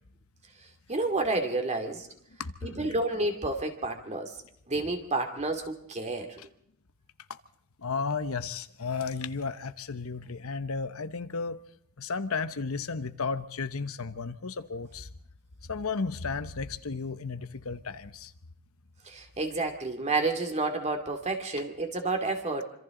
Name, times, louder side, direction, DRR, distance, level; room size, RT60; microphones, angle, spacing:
voice 1, 0.9-2.1 2.6-4.3 4.7-6.4 19.1-22.6, right 2 dB, 30° right, 5 dB, 2.6 m, -30 dB
voice 2, 2.4-2.9 6.4-6.5 7.8-11.6 12.0-15.1 15.7-18.3, left 4 dB, 70° left, 11 dB, 1.0 m, -34 dB
26.0 x 26.0 x 3.9 m, 0.70 s
head